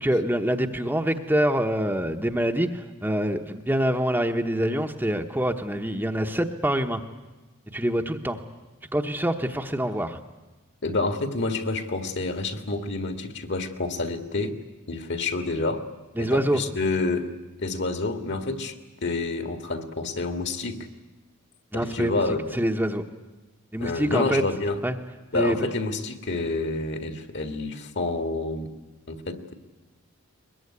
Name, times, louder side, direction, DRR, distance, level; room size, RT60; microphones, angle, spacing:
voice 1, 0.0-7.0 7.7-8.4 8.9-10.2 16.2-16.6 21.7-22.2 22.5-23.0 23.7-24.4 24.8-25.0 25.3-25.6, right 1 dB, 10° right, 4 dB, 1.0 m, -25 dB
voice 2, 10.8-14.6 14.9-15.8 16.2-17.3 17.6-18.8 19.0-20.9 21.7-22.4 23.8-24.8 25.3-28.7 29.1-29.5, left 3 dB, 50° left, 7 dB, 1.9 m, -28 dB
22.0 x 21.5 x 9.8 m, 1.1 s
head